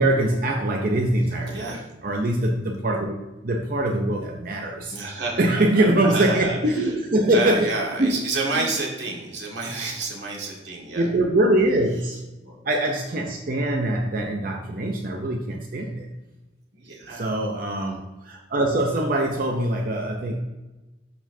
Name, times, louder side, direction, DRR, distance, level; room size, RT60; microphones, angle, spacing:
voice 1, 0.0-1.7 2.0-3.2 3.4-5.0 5.4-7.7 8.0-8.3 8.5-8.7 10.9-12.2 12.6-16.1 17.1-20.4, right 1 dB, 45° right, 1 dB, 0.6 m, -23 dB
voice 2, 1.5-1.8 4.9-5.6 6.0-6.9 7.3-11.1 12.4-12.6 16.7-17.3, right 3 dB, 65° right, -2 dB, 1.8 m, -29 dB
12.0 x 4.3 x 2.7 m, 1.1 s
head